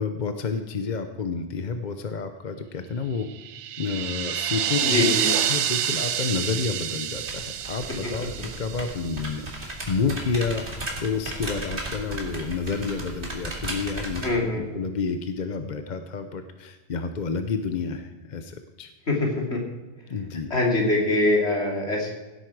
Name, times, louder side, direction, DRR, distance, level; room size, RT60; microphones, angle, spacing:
voice 1, 0.0-3.3 3.8-5.0 5.5-18.9 20.1-20.5, left 5 dB, 45° left, 7 dB, 0.8 m, -30 dB
sound 1, 3.3-9.5, right 9 dB, 85° right, 1.0 m, -28 dB
voice 2, 4.8-5.3 14.2-14.6 19.1-19.6 20.5-22.1, left 2 dB, 70° left, -1 dB, 3.1 m, -23 dB
sound 2, 7.1-14.3, right 1 dB, 50° right, 2.5 m, -35 dB
17.0 x 8.3 x 4.7 m, 1.2 s
omnidirectional pair, 1.2 m